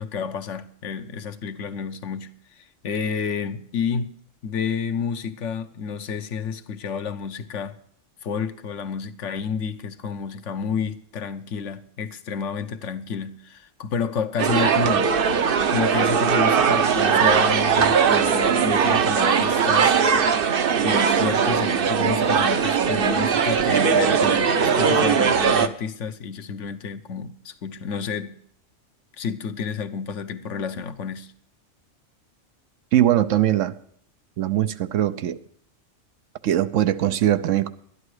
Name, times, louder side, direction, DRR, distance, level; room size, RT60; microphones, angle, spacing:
voice 1, 0.0-4.2 4.4-7.8 8.2-15.2 15.7-20.0 20.8-28.4 29.2-31.3, left 6 dB, 70° left, 1.1 m, -30 dB
sound 1, 14.4-25.7, right 6 dB, 50° right, 0.8 m, -20 dB
voice 2, 32.9-33.7 34.4-35.4 36.4-37.7, right 12 dB, 80° right, 1.0 m, -21 dB
12.5 x 11.5 x 4.8 m
omnidirectional pair, 1.3 m